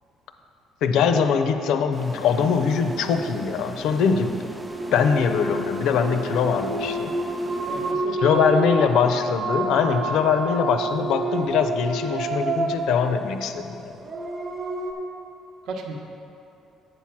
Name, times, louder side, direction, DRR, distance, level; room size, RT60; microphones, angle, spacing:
voice 1, 0.8-4.4 4.9-7.1 8.2-14.0, left 6 dB, 70° left, 8 dB, 0.6 m, -22 dB
sound 1, 1.9-8.5, right 1 dB, 5° right, 0.4 m, -39 dB
sound 2, 4.4-14.9, right 2 dB, 20° right, 0.9 m, -29 dB
voice 2, 7.7-9.1 14.5-14.6 15.6-16.0, right 3 dB, 65° right, 2 dB, 1.0 m, -35 dB
8.0 x 6.1 x 5.8 m, 2.8 s
cardioid pair, 160°, 0 cm